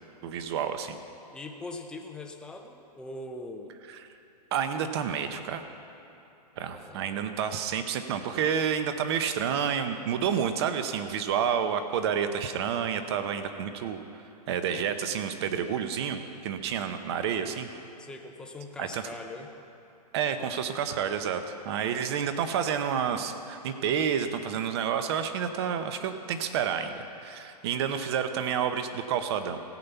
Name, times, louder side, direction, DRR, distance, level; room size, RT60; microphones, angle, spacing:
voice 1, 0.2-1.0 4.5-5.6 6.6-14.0 14.5-17.7 18.8-19.1 20.1-29.6, right 8 dB, 40° right, 8 dB, 0.9 m, -29 dB
voice 2, 1.3-3.7 6.7-7.3 18.0-19.5, left 2 dB, 5° left, 3 dB, 0.5 m, -42 dB
16.0 x 5.6 x 8.2 m, 2.9 s
hypercardioid pair, 155°, 21 cm